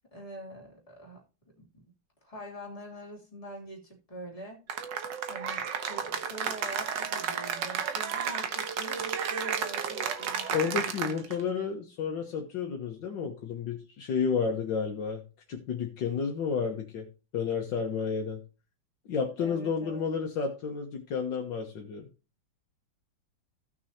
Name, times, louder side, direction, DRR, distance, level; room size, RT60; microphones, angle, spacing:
voice 1, 0.1-1.2 1.6-1.9 2.2-4.6 5.3-10.9 19.4-20.1, equal, 15° left, -3 dB, 2.8 m, -45 dB
Cheering / Applause, 4.7-11.4, right 7 dB, 70° right, 1.7 m, -32 dB
voice 2, 10.5-15.2 15.5-17.1 17.3-18.4 19.1-22.1, left 6 dB, 70° left, 2 dB, 1.8 m, -31 dB
15.5 x 6.2 x 2.8 m, 0.32 s
omnidirectional pair, 2.1 m